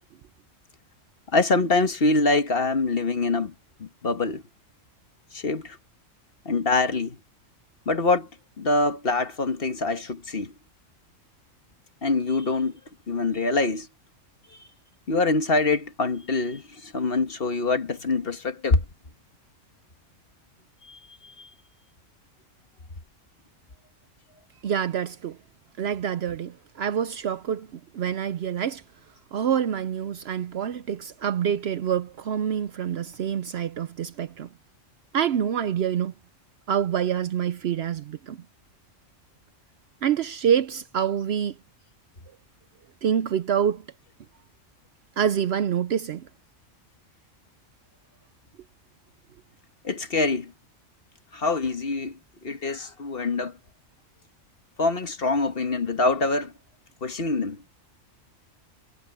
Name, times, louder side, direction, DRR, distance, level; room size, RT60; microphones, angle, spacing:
voice 1, 1.3-3.5 3.8-4.4 5.3-5.8 6.5-7.2 7.9-8.3 8.6-10.5 12.0-12.7 13.1-13.9 15.1-18.8 20.9-21.0 21.4-21.5 49.8-50.5 51.3-52.2 52.4-53.5 54.8-56.5 57.0-57.6, left 3 dB, 50° left, 1.6 m, -24 dB
voice 2, 24.6-25.4 25.8-28.8 29.3-34.5 35.1-36.1 36.7-38.4 40.0-41.5 43.0-43.8 45.2-46.3, right 8 dB, 60° right, 0.8 m, -26 dB
omnidirectional pair, 1.3 m